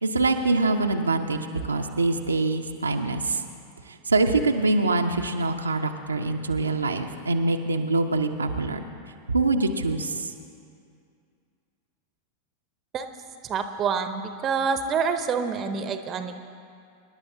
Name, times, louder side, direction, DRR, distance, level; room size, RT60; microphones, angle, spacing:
voice 1, 0.0-3.4 3.9-8.8 9.3-10.3, right 2 dB, 80° right, 4 dB, 0.7 m, -24 dB
voice 2, 13.4-16.3, right 6 dB, 30° right, 8 dB, 0.8 m, -27 dB
26.0 x 11.0 x 2.8 m, 2.4 s
figure-of-eight pair, 90°, 0 cm